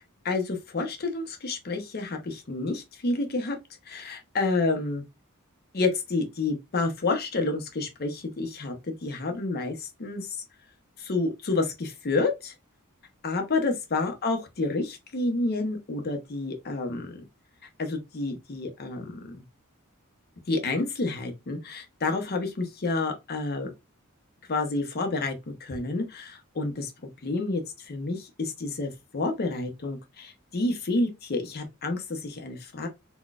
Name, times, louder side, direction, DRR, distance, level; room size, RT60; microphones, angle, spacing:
voice 1, 0.2-3.6 3.9-5.0 5.7-10.4 11.0-12.5 13.2-17.2 17.8-19.4 20.5-23.7 24.5-25.3 25.6-26.9 27.2-32.9, left 3 dB, 50° left, 0.6 m, -29 dB
3.9 x 2.2 x 2.3 m
head